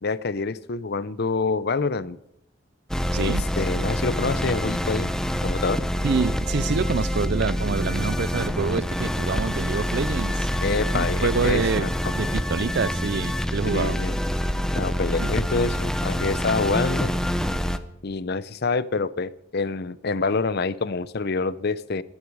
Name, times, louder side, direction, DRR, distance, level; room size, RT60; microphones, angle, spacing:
voice 1, 0.0-2.2 3.2-5.1 5.4-5.8 10.6-11.9 13.7-14.2 14.7-17.1 18.0-22.0, left 4 dB, 55° left, 0.7 m, -26 dB
sound 1, 2.9-17.8, equal, 5° left, 0.7 m, -26 dB
voice 2, 3.1-3.4 6.0-10.5 10.9-14.0 15.2-15.3, right 5 dB, 55° right, 0.5 m, -27 dB
15.5 x 13.0 x 4.8 m
head